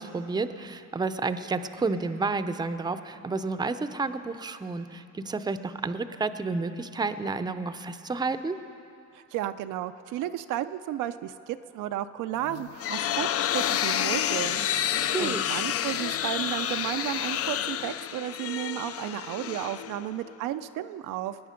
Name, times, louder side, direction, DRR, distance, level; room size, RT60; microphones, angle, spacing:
voice 1, 0.0-8.6 15.0-15.5, right 3 dB, 15° right, 11 dB, 0.5 m, -31 dB
voice 2, 9.1-14.6 15.2-21.4, right 12 dB, 90° right, 10 dB, 0.5 m, -33 dB
sound 1, 12.4-20.3, left 10 dB, 50° left, 0.4 m, -29 dB
20.0 x 9.6 x 5.1 m, 2.7 s
cardioid pair, 90°, 30 cm